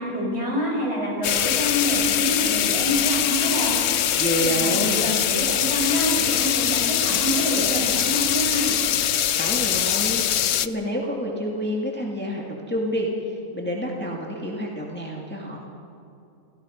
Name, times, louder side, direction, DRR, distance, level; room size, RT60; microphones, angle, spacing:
voice 1, 0.0-3.8 4.4-8.8, equal, 45° right, -3 dB, 6.2 m, -27 dB
sound 1, 1.2-10.7, left 10 dB, 60° left, 0.8 m, -23 dB
voice 2, 4.1-5.0 9.3-15.6, equal, 5° left, -2 dB, 2.3 m, -28 dB
29.0 x 17.0 x 5.3 m, 2.6 s
omnidirectional pair, 1.5 m